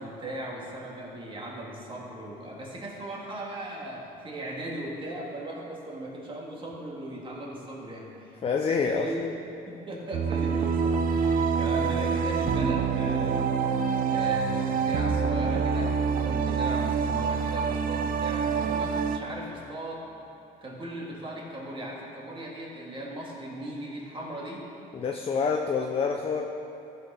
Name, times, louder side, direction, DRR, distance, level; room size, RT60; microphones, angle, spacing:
voice 1, 0.0-8.4 8.8-9.2 9.7-13.4 14.1-20.1 20.6-24.7, right 1 dB, 30° right, -3 dB, 2.0 m, -38 dB
voice 2, 8.4-9.1 24.9-26.4, left 5 dB, 35° left, 2 dB, 0.6 m, -27 dB
sound 1, 10.1-19.2, right 6 dB, 55° right, 0.6 m, -26 dB
14.0 x 5.7 x 4.3 m, 2.7 s
cardioid pair, 110°, 17 cm